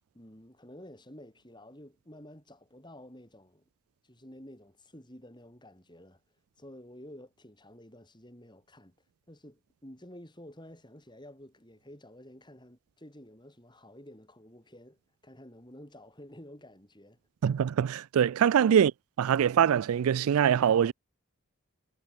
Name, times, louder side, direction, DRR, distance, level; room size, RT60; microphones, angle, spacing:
voice 1, 0.1-3.6 4.0-6.2 6.6-8.9 9.3-17.2, left 1 dB, 20° left, 6.8 m, -51 dB
voice 2, 17.4-18.9 19.2-20.9, right 8 dB, 80° right, 0.3 m, -23 dB
head